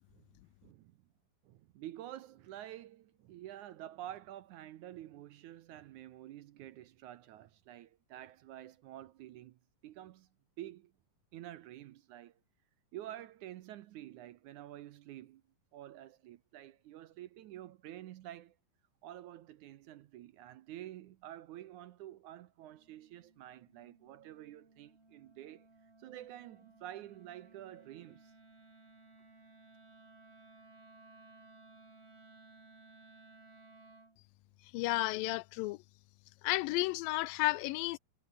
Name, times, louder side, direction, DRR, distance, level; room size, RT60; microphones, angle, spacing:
voice 1, 0.1-1.0 1.4-10.3 10.6-10.9 11.3-12.4 12.9-15.4 15.7-18.6 19.0-25.7 26.0-28.3, right 13 dB, 70° right, 2.0 m, -49 dB
Wind instrument woodwind instrument, 22.7-34.2, right 3 dB, 40° right, 9.0 m, -60 dB
voice 2, 34.7-35.8 36.4-38.0, left 20 dB, 85° left, 2.3 m, -32 dB
omnidirectional pair, 4.1 m